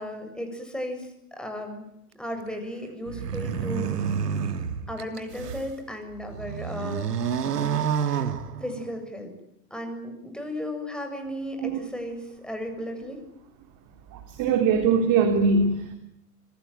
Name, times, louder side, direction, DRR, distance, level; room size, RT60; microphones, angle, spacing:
voice 1, 0.0-1.8 2.1-4.1 4.9-7.2 8.6-9.3 9.7-13.2, equal, ahead, 5 dB, 7.5 m, -35 dB
sound 1, 3.1-5.7 6.2-9.0, right 7 dB, 75° right, 2.8 m, -29 dB
voice 2, 14.4-15.9, right 5 dB, 40° right, 6 dB, 3.7 m, -21 dB
26.5 x 21.5 x 9.4 m, 0.80 s
hypercardioid pair, 100°, 48 cm